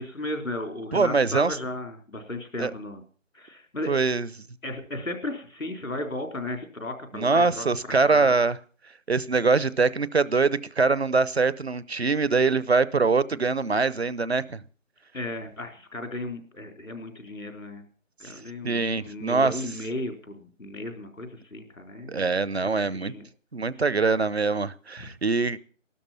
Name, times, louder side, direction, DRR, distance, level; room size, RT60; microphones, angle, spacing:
voice 1, 0.0-3.0 3.3-3.9 4.6-7.6 8.0-8.3 15.1-17.8 18.2-22.3 22.6-23.3 23.8-23.9 25.0-25.1, left 1 dB, 80° left, 5 dB, 4.0 m, -35 dB
voice 2, 0.9-1.6 2.6-2.7 3.9-4.3 7.1-8.6 9.1-14.6 18.6-19.6 22.1-23.1 23.5-25.6, right 4 dB, 55° right, 19 dB, 0.8 m, -23 dB
12.5 x 12.0 x 7.2 m, 0.42 s
figure-of-eight pair, 175°, 39 cm